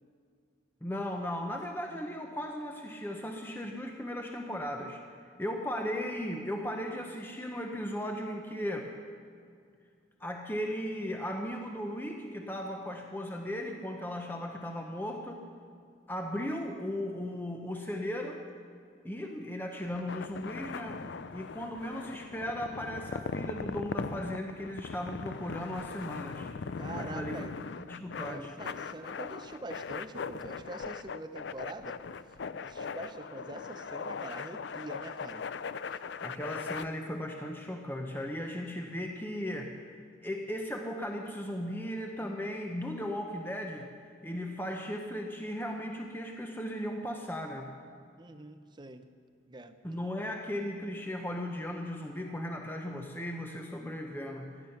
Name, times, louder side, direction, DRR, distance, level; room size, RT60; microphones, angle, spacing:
voice 1, 0.8-5.0 5.4-8.9 10.2-15.4 16.1-18.4 19.0-21.0 21.3-26.5 27.0-27.4 27.9-28.5 36.2-43.9 44.2-47.7 49.8-54.5, equal, 10° left, 2 dB, 0.8 m, -36 dB
sound 1, 19.8-36.8, left 5 dB, 55° left, 0.4 m, -40 dB
voice 2, 26.8-27.5 28.1-32.0 32.6-35.5 48.2-49.1 49.5-49.8, right 2 dB, 20° right, 9 dB, 0.6 m, -44 dB
16.0 x 11.5 x 5.8 m, 2.3 s
head